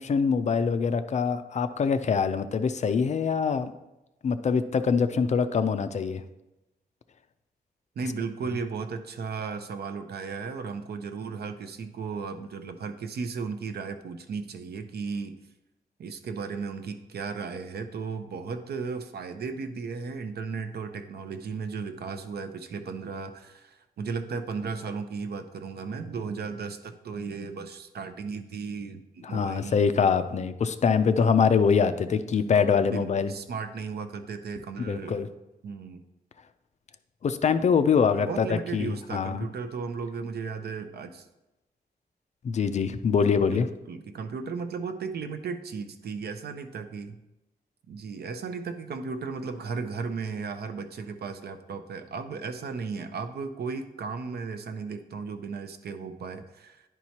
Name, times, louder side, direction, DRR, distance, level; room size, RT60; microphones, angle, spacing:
voice 1, 0.0-3.7 4.2-6.2 29.2-33.3 34.8-35.3 37.2-39.4 42.4-43.7, left 6 dB, 45° left, 10 dB, 0.4 m, -24 dB
voice 2, 8.0-15.4 16.0-29.8 32.1-32.2 32.9-35.2 35.6-36.0 38.1-41.3 43.5-43.6 43.9-47.2 47.9-56.8, right 5 dB, 80° right, 9 dB, 0.6 m, -35 dB
10.5 x 4.5 x 2.8 m, 0.98 s
wide cardioid pair, 160°, 16 cm